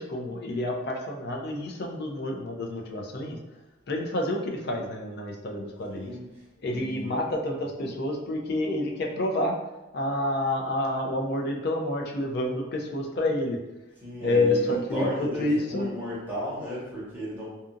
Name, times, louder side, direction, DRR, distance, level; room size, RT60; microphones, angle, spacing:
voice 1, 0.0-3.4 3.9-6.2 6.6-9.6 9.9-13.6 14.2-15.9, left 1 dB, 55° left, 1 dB, 0.4 m, -28 dB
voice 2, 5.9-6.3 6.6-7.3 14.0-17.5, left 1 dB, 10° right, -9 dB, 0.9 m, -34 dB
2.7 x 2.4 x 2.5 m, 1.0 s
head